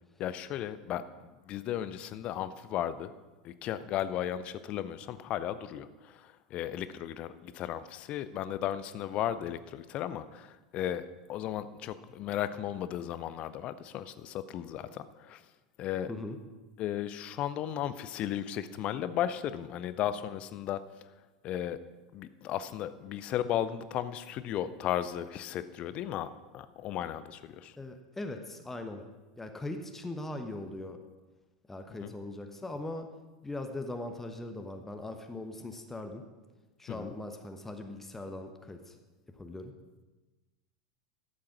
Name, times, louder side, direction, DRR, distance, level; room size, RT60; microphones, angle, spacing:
voice 1, 0.2-3.1 3.4-15.4 15.8-16.1 16.8-20.8 21.4-21.8 22.1-26.3 26.5-27.7 32.0-32.1 36.9-37.1, left 11 dB, 40° left, 14 dB, 0.6 m, -35 dB
voice 2, 27.8-29.0 29.4-31.0 31.7-33.1 33.4-36.2 36.8-39.0 39.4-39.7, left 2 dB, 10° left, 5 dB, 1.0 m, -40 dB
12.5 x 7.5 x 6.0 m, 1.2 s
figure-of-eight pair, 80°, 3 cm